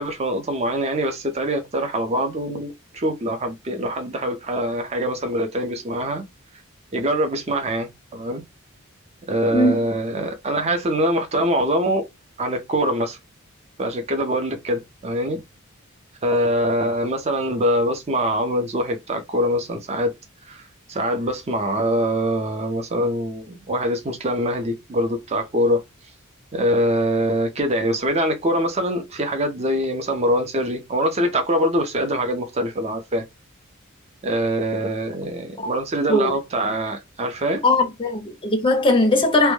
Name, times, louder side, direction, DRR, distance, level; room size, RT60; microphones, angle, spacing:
voice 1, 0.0-6.2 6.9-8.4 9.3-12.0 12.4-13.2 13.8-15.4 16.2-20.1 20.4-25.8 26.5-33.3 34.2-37.6, equal, 30° right, 0.5 m, -23 dB
voice 2, 9.5-9.8 35.6-35.7 36.1-36.3 37.6-39.5, left 2 dB, 25° left, 0.5 m, -19 dB
2.1 x 2.1 x 3.1 m
head